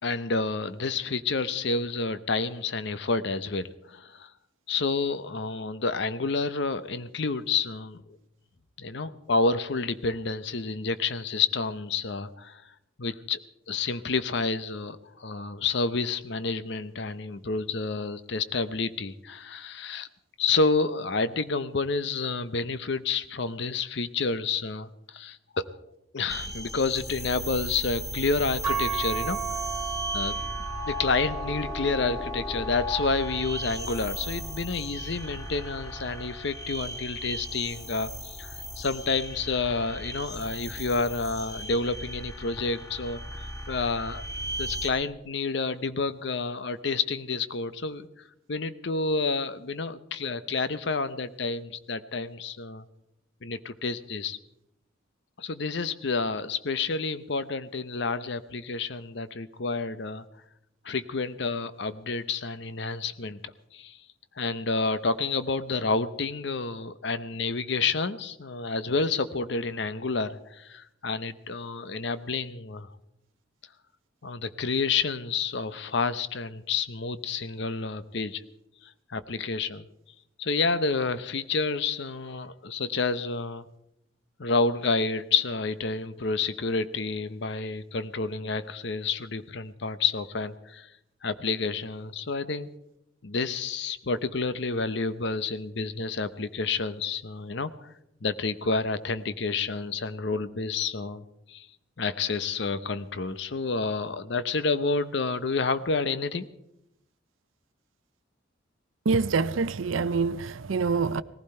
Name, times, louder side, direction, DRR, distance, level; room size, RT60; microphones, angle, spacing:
voice 1, 0.0-4.3 4.7-8.2 8.8-12.6 13.0-13.4 13.7-20.1 20.4-25.7 26.1-29.4 30.1-30.4 30.8-44.2 44.6-48.1 48.5-52.8 53.4-54.4 55.4-60.2 60.8-63.4 63.7-64.0 64.4-72.9 74.2-78.4 78.8-79.9 80.4-83.7 84.4-90.9 91.2-92.7 93.2-97.9 98.2-101.7 102.0-106.5, left 4 dB, 60° left, 0.8 m, -29 dB
sound 1, 26.3-44.9, left 1 dB, 15° left, 1.4 m, -36 dB
sound 2, 28.6-36.9, right 8 dB, 15° right, 1.9 m, -37 dB
voice 2, 109.1-111.2, right 4 dB, 80° right, 0.5 m, -25 dB
19.0 x 15.5 x 4.4 m
head